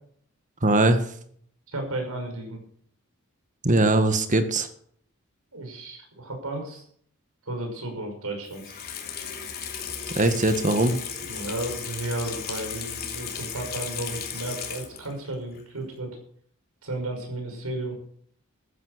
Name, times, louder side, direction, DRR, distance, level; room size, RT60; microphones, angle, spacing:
voice 1, 0.6-1.0 3.6-4.7 10.1-11.0, right 2 dB, 35° right, 9 dB, 1.7 m, -20 dB
voice 2, 1.7-2.6 5.5-6.8 7.4-8.7 11.2-16.2 16.8-18.0, right 2 dB, 80° right, 3 dB, 6.1 m, -33 dB
Water tap faucet / Sink (filling or washing), 8.5-15.2 15.5-15.6, left 7 dB, 45° left, 3.1 m, -35 dB
14.5 x 11.0 x 6.7 m, 0.62 s
head